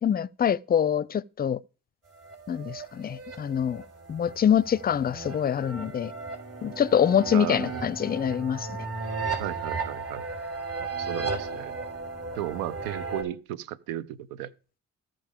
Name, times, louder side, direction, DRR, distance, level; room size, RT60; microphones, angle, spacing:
voice 1, 0.0-1.6 2.5-3.8 4.1-6.1 6.6-8.8, left 8 dB, 30° left, 0.5 m, -25 dB
sound 1, 2.2-13.2, right 4 dB, 45° right, 4.0 m, -35 dB
voice 2, 7.3-7.8 9.4-10.2 11.0-11.7 12.3-14.5, right 12 dB, 90° right, 0.7 m, -34 dB
14.5 x 5.2 x 3.6 m
supercardioid pair, 55°, 33 cm